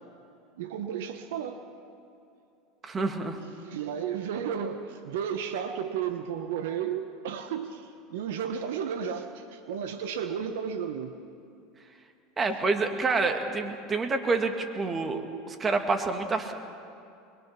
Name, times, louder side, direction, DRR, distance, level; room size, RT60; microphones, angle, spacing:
voice 1, 0.6-1.6 3.6-11.2, right 7 dB, 75° right, 8 dB, 1.2 m, -33 dB
voice 2, 2.8-3.4 12.4-16.5, right 3 dB, 25° right, 5 dB, 2.3 m, -28 dB
22.5 x 22.0 x 6.0 m, 2.6 s
hypercardioid pair, 90°, 0 cm